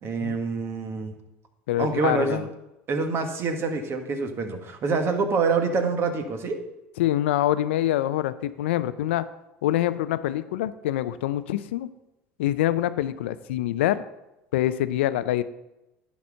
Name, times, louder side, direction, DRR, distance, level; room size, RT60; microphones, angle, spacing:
voice 1, 0.0-1.1 1.8-2.5 2.9-6.6, right 4 dB, 40° right, 6 dB, 1.5 m, -26 dB
voice 2, 1.7-2.4 7.0-9.2 9.6-11.9 12.4-14.0 14.5-15.4, left 13 dB, 85° left, 14 dB, 0.4 m, -25 dB
10.0 x 4.2 x 6.3 m, 0.95 s
hypercardioid pair, 85°, 6 cm